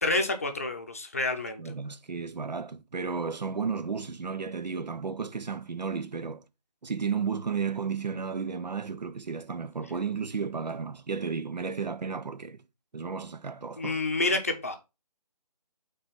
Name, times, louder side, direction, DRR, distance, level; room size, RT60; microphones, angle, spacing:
voice 1, 0.0-1.7 13.8-14.8, left 2 dB, 20° left, 0.7 m, -28 dB
voice 2, 1.6-6.4 6.8-12.6 12.9-14.0, right 5 dB, 90° right, 1.0 m, -33 dB
5.8 x 4.1 x 5.6 m
hypercardioid pair, 175°, 21 cm